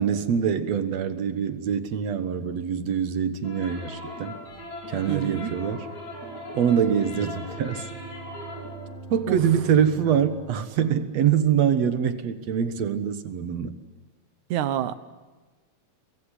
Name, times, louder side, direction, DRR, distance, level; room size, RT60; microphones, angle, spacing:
voice 1, 0.0-4.4 4.9-5.9 6.5-7.9 9.1-13.7, right 8 dB, 65° right, 10 dB, 2.5 m, -24 dB
sound 1, 3.4-8.9, left 1 dB, 70° left, 5.9 m, -39 dB
sound 2, 4.2-11.0, right 4 dB, 55° left, 3.6 m, -45 dB
voice 2, 5.1-5.5 9.3-9.4 14.5-15.0, right 11 dB, 80° right, 13 dB, 2.5 m, -27 dB
24.5 x 21.5 x 10.0 m, 1.3 s
omnidirectional pair, 3.3 m